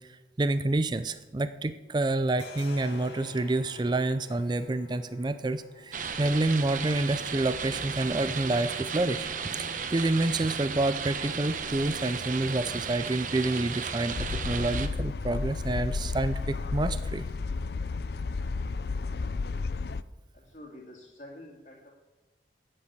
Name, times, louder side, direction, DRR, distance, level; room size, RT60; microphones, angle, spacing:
voice 1, 0.4-9.3 9.6-17.2, right 2 dB, 25° right, 12 dB, 0.4 m, -28 dB
sound 1, 1.0-1.7 2.0-19.5, left 2 dB, 80° left, 2.2 m, -54 dB
sound 2, 5.9-14.9, right 6 dB, 45° right, 0.9 m, -35 dB
sound 3, 14.1-20.0, left 4 dB, 60° left, 0.5 m, -32 dB
voice 2, 20.3-21.9, left 1 dB, 45° left, -6 dB, 2.4 m, -48 dB
10.0 x 8.5 x 8.2 m, 1.1 s
head